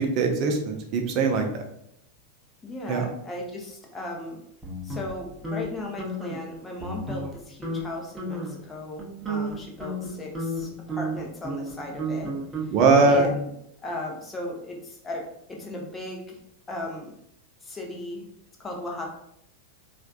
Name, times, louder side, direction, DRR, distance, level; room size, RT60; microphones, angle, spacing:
voice 1, 0.0-1.5 2.9-3.0 12.7-13.3, right 3 dB, 40° right, 3 dB, 0.7 m, -21 dB
voice 2, 2.6-4.4 4.8-12.3 12.6-12.7 13.1-13.5 13.8-16.4 16.7-17.1 17.6-18.3 18.6-19.1, left 1 dB, 15° left, 0 dB, 0.8 m, -36 dB
sound 1, 4.6-5.7 6.0-6.4 6.8-7.4 7.6-7.8 8.2-8.6 9.0-13.3, right 1 dB, 10° right, 0.9 m, -32 dB
4.3 x 2.5 x 2.4 m, 0.74 s
figure-of-eight pair, 90°, 0 cm